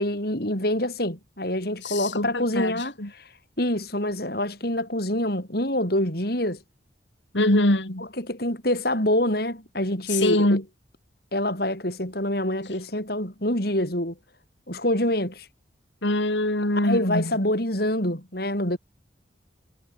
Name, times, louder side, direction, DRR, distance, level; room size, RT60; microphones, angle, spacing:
voice 1, 0.0-3.2 3.6-6.6 8.0-10.6 11.3-14.2 14.7-15.5 16.8-18.8, left 1 dB, 50° left, 7.1 m, -26 dB
voice 2, 1.8-3.1 7.3-8.0 10.1-10.6 16.0-17.3, left 1 dB, 70° left, 3.7 m, -23 dB
head